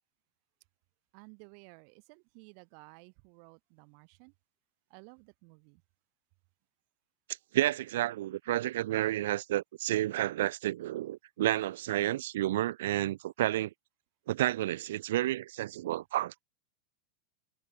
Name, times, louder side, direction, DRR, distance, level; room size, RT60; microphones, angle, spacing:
voice 1, 1.1-4.3 4.9-5.8, right 40 dB or more, 50° right, 4.6 m, -55 dB
voice 2, 7.5-13.7 14.3-16.3, right 14 dB, 75° right, 0.6 m, -30 dB
supercardioid pair, 155°, 0 cm